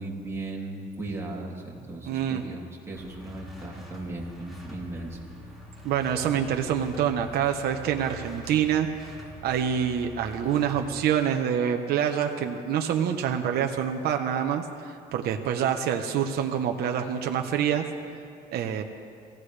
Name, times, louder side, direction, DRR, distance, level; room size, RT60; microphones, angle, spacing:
voice 1, 0.0-5.2, right 2 dB, 15° right, -4 dB, 3.2 m, -37 dB
voice 2, 2.1-2.4 5.8-9.1 9.4-17.8 18.5-18.8, right 8 dB, 70° right, 4 dB, 1.0 m, -26 dB
sound 1, 2.9-10.8, left 1 dB, ahead, 4.5 m, -45 dB
24.0 x 16.0 x 3.3 m, 2.4 s
cardioid pair, 110°, 17 cm